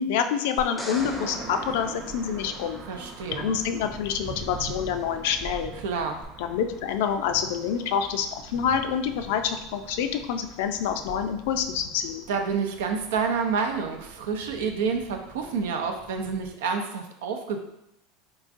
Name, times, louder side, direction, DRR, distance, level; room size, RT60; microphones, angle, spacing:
voice 1, 0.0-2.8 3.3-5.7 6.4-12.3, left 7 dB, 75° left, 7 dB, 0.4 m, -27 dB
sound 1, 0.6-2.9 6.2-6.3, equal, 5° left, 0.6 m, -40 dB
sound 2, 0.9-16.5, right 4 dB, 40° right, 0.6 m, -43 dB
voice 2, 2.9-3.5 5.8-6.2 12.3-17.6, right 5 dB, 90° right, 4 dB, 0.5 m, -28 dB
3.8 x 3.5 x 2.5 m, 0.83 s
supercardioid pair, 130°, 0 cm